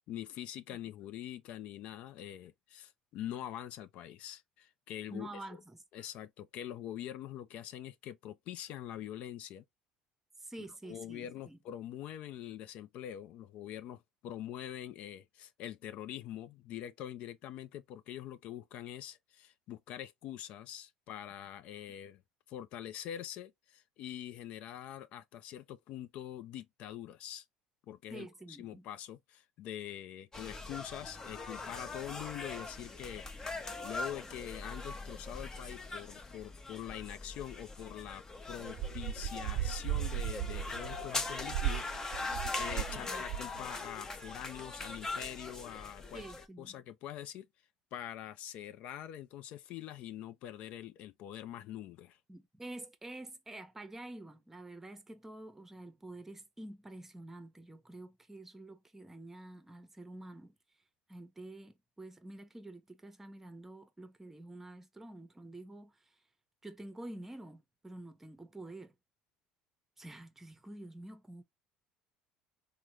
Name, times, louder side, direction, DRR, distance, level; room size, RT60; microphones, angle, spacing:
voice 1, 0.0-5.6 5.9-9.6 10.8-22.2 22.5-27.4 27.9-46.3 46.6-47.5 47.9-52.2, left 11 dB, 65° left, 0.4 m, -44 dB
voice 2, 5.1-5.8 10.4-11.6 28.1-28.9 42.9-43.2 46.1-46.8 52.3-60.5 61.1-66.1 66.6-68.9 70.0-71.4, right 1 dB, 15° right, 0.8 m, -48 dB
sound 1, 30.3-46.5, left 3 dB, 25° left, 0.7 m, -41 dB
sound 2, 38.7-43.0 43.3-43.6, right 12 dB, 55° right, 0.3 m, -36 dB
3.5 x 2.1 x 2.9 m
supercardioid pair, 90°, 2 cm